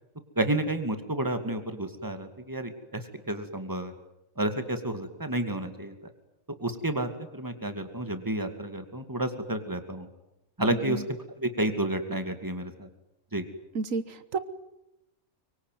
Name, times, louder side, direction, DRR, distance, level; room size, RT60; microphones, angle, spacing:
voice 1, 0.4-3.9 4.4-5.9 6.6-10.1 10.6-11.0 11.4-12.9 13.3-13.5, right 1 dB, 15° right, 8 dB, 2.4 m, -30 dB
voice 2, 13.7-14.4, right 4 dB, 85° right, 13 dB, 1.6 m, -31 dB
25.5 x 23.5 x 9.4 m, 0.89 s
omnidirectional pair, 1.3 m